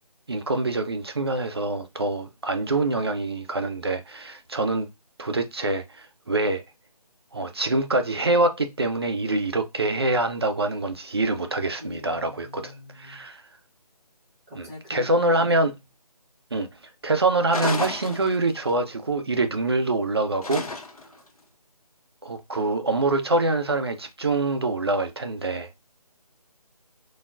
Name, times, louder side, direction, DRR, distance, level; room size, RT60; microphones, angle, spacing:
voice 1, 0.3-4.9 5.2-6.6 7.3-13.4 14.6-15.7 16.5-16.7 17.0-20.6 22.2-25.7, right 2 dB, 40° right, 0.4 m, -25 dB
voice 2, 11.8-13.2 14.5-15.6, left 1 dB, 25° right, 1.0 m, -41 dB
sound 1, 17.5-18.7 20.4-21.2, left 3 dB, 70° left, 0.9 m, -31 dB
3.2 x 2.2 x 2.4 m
figure-of-eight pair, 165°, 20 cm